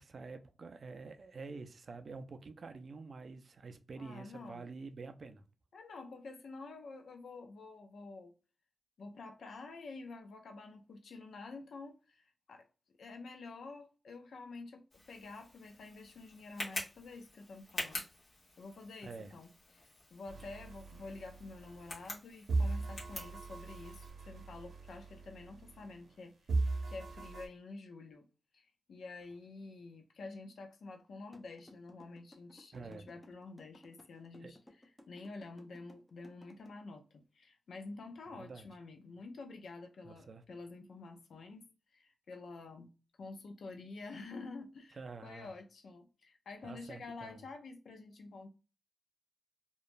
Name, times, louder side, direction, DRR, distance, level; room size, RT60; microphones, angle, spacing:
voice 1, 0.0-5.4 19.0-19.3 20.4-20.5 32.7-33.1 34.4-34.5 38.3-38.7 40.0-40.4 45.0-45.5 46.6-47.4, right 4 dB, 55° right, 0.4 m, -48 dB
voice 2, 4.0-4.7 5.7-8.3 9.0-12.7 13.0-18.1 18.6-26.3 26.9-28.3 28.5-34.6 35.1-41.7 41.9-42.9 43.2-48.5, left 3 dB, 75° left, 0.4 m, -49 dB
Tick, 14.9-24.1, left 2 dB, 40° left, 1.1 m, -47 dB
sound 1, 20.3-22.1 22.5-26.2 26.5-27.5, right 3 dB, 75° right, 0.7 m, -38 dB
sound 2, 31.3-36.7, left 1 dB, 10° left, 0.5 m, -58 dB
2.9 x 2.2 x 2.5 m
wide cardioid pair, 100°, 0 cm